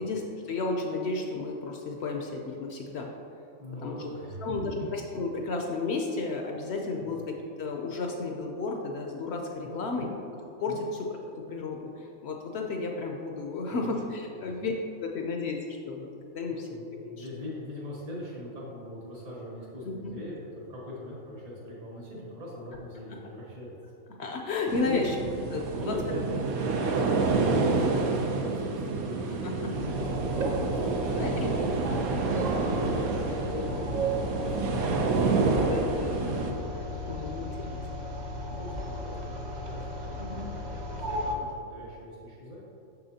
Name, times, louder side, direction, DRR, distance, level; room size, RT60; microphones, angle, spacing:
voice 1, 0.0-3.1 3.8-4.0 4.4-10.1 10.6-11.2 11.5-14.7 15.0-16.1 16.3-17.3 19.8-20.1 23.1-23.2 24.2-25.1 25.5-25.9 27.1-27.2 29.2-29.7 31.1-31.5 31.9-32.0 32.5-33.3 33.5-33.9 35.6-36.1 36.7-37.8 40.2-40.4, left 3 dB, 65° left, 1 dB, 0.7 m, -33 dB
voice 2, 3.6-4.7 7.0-7.2 9.6-10.2 10.7-10.8 13.7-14.0 14.3-14.5 16.5-23.8 24.8-25.0 25.8-26.4 26.9-31.8 33.8-35.0 35.4-35.9 36.9-37.6 38.4-40.3 41.0-42.6, left 1 dB, 65° right, -6 dB, 1.7 m, -41 dB
sound 1, 24.7-36.5, right 3 dB, 85° right, 1.1 m, -28 dB
sound 2, 29.7-41.3, equal, 45° right, 0.6 m, -35 dB
6.8 x 6.2 x 2.8 m, 2.7 s
omnidirectional pair, 1.5 m